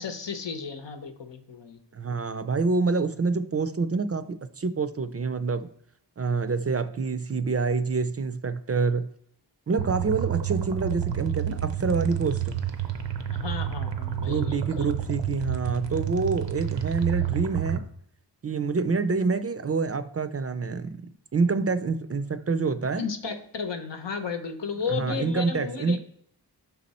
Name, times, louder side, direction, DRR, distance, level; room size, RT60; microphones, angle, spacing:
voice 1, 0.0-1.8 13.3-14.9 23.0-26.0, left 6 dB, 85° left, 6 dB, 0.8 m, -34 dB
voice 2, 1.9-5.7 6.2-9.1 9.7-12.6 14.2-17.9 18.4-21.1 21.3-23.0 24.9-26.0, right 4 dB, 35° right, 12 dB, 0.4 m, -27 dB
sound 1, 9.8-17.8, right 10 dB, 90° right, 0.7 m, -29 dB
5.8 x 4.1 x 4.1 m, 0.69 s
wide cardioid pair, 55°, 42 cm